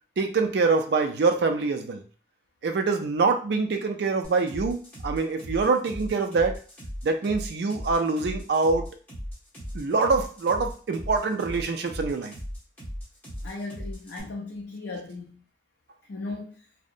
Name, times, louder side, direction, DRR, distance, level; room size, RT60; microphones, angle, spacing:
voice 1, 0.2-2.0 2.6-6.6 7.0-8.9 9.7-12.3, right 4 dB, 65° right, 5 dB, 0.4 m, -25 dB
sound 1, 4.2-14.2, equal, 10° left, 0.9 m, -37 dB
voice 2, 13.4-15.4 16.1-16.6, left 3 dB, 75° left, -2 dB, 0.4 m, -37 dB
2.7 x 2.0 x 2.5 m, 0.39 s
head